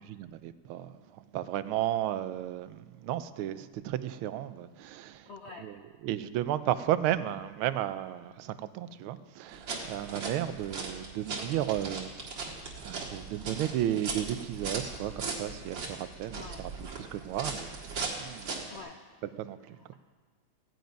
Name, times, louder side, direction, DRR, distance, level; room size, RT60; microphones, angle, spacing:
voice 1, 0.2-1.0 1.3-5.3 5.6-5.7 6.0-12.1 12.8-16.7 17.1-17.7 18.2-18.6 19.4-19.6, right 12 dB, 85° right, 13 dB, 1.4 m, -33 dB
voice 2, 5.3-5.7 16.3-16.6 18.7-19.0 19.7-19.9, left 4 dB, 65° left, 2 dB, 0.6 m, -46 dB
sound 1, 9.5-18.8, right 4 dB, 65° right, 2.4 m, -38 dB
15.5 x 9.4 x 5.2 m, 1.4 s
omnidirectional pair, 2.3 m